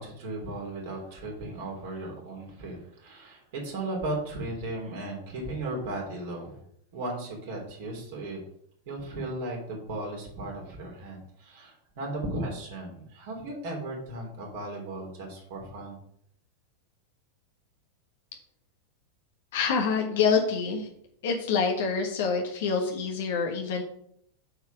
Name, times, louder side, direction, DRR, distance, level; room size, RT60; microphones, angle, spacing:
voice 1, 0.0-6.6 6.9-8.4 8.8-16.0, right 2 dB, 50° right, 0 dB, 3.4 m, -36 dB
voice 2, 19.5-20.9 21.2-23.8, left 5 dB, 55° left, 2 dB, 1.4 m, -26 dB
8.0 x 4.8 x 6.3 m, 0.69 s
figure-of-eight pair, 90°, 0 cm